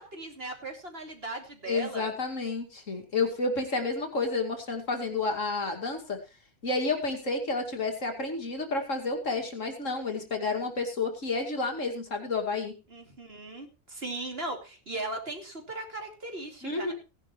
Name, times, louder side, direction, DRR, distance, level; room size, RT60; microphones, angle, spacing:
voice 1, 0.0-2.1 12.9-16.9, right 2 dB, 45° right, 3 dB, 3.0 m, -38 dB
voice 2, 1.7-6.2 6.6-12.7 16.6-16.9, left 3 dB, 65° left, 4 dB, 2.7 m, -30 dB
17.5 x 10.5 x 3.1 m, 0.29 s
omnidirectional pair, 1.4 m